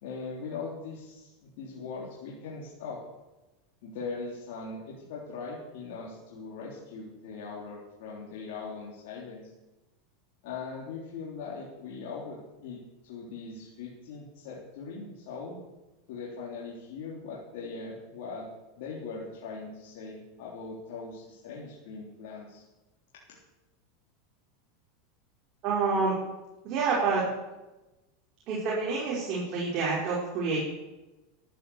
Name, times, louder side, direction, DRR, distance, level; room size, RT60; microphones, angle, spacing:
voice 1, 0.0-3.0 3.8-9.5 10.4-12.4 12.6-15.6 16.1-18.4 18.8-22.6 23.3-23.4, left 4 dB, 70° left, -4 dB, 3.6 m, -40 dB
voice 2, 25.6-26.1 26.6-27.2 28.5-30.6, right 4 dB, 45° right, -5 dB, 4.9 m, -28 dB
13.0 x 10.5 x 7.1 m, 1.1 s
supercardioid pair, 120°, 0 cm